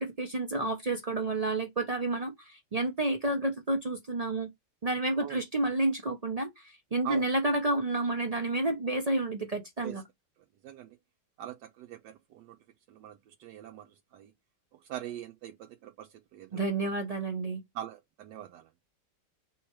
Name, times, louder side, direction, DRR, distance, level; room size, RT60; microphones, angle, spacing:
voice 1, 0.0-4.5 4.8-10.0 16.5-17.6, right 2 dB, 55° right, 0.4 m, -30 dB
voice 2, 10.6-11.0 11.4-12.6 12.9-14.3 14.8-16.6 17.7-18.7, right 12 dB, 80° right, 1.2 m, -42 dB
3.8 x 3.0 x 4.5 m
omnidirectional pair, 1.9 m